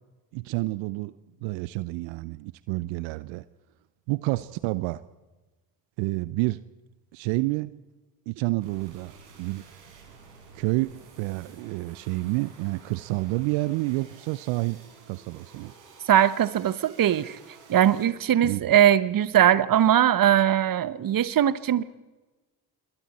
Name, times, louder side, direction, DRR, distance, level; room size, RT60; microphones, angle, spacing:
voice 1, 0.3-1.1 1.4-3.4 4.1-5.0 6.0-6.6 7.1-7.7 8.3-9.6 10.5-14.8 15.1-15.7 18.4-18.6, right 21 dB, 65° right, 17 dB, 0.8 m, -29 dB
sound 1, 8.6-18.1, right 5 dB, 80° right, 4.8 m, -52 dB
voice 2, 16.1-17.4 17.7-21.8, right 10 dB, 45° right, 17 dB, 1.1 m, -20 dB
27.0 x 22.5 x 4.3 m, 1.2 s
hypercardioid pair, 55°, 49 cm